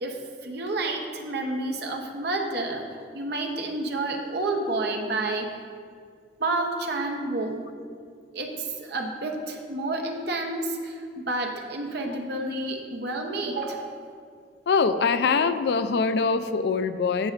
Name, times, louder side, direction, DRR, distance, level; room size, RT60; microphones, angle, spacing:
voice 1, 0.0-5.6 6.4-7.6 8.3-14.0, right 2 dB, 65° right, 3 dB, 0.9 m, -30 dB
voice 2, 14.7-17.3, left 5 dB, 70° left, 11 dB, 0.4 m, -23 dB
13.5 x 6.3 x 2.5 m, 2.1 s
head